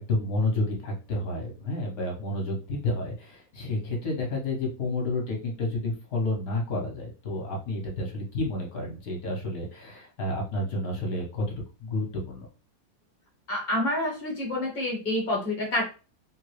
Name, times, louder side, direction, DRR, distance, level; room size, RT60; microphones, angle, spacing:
voice 1, 0.0-11.5 11.8-12.5, left 2 dB, 60° left, 0 dB, 1.2 m, -30 dB
voice 2, 13.5-15.8, left 1 dB, 35° left, 0 dB, 0.8 m, -28 dB
3.0 x 2.3 x 3.1 m, 0.33 s
omnidirectional pair, 2.1 m